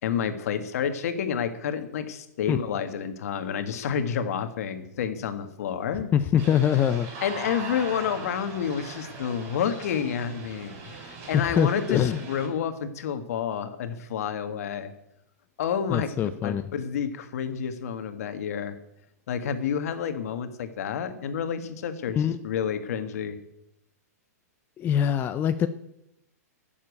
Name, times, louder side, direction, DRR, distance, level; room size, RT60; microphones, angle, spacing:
voice 1, 0.0-6.1 7.2-14.9 15.6-18.8 19.3-23.4, left 8 dB, 65° left, 9 dB, 1.7 m, -29 dB
voice 2, 6.1-7.1 11.6-12.2 15.9-16.6 22.2-22.3 24.8-25.7, left 9 dB, 20° left, 10 dB, 0.5 m, -23 dB
sound 1, 6.4-12.5, right 4 dB, 45° right, 5.7 m, -40 dB
12.0 x 7.4 x 8.4 m, 0.85 s
hypercardioid pair, 135°, 9 cm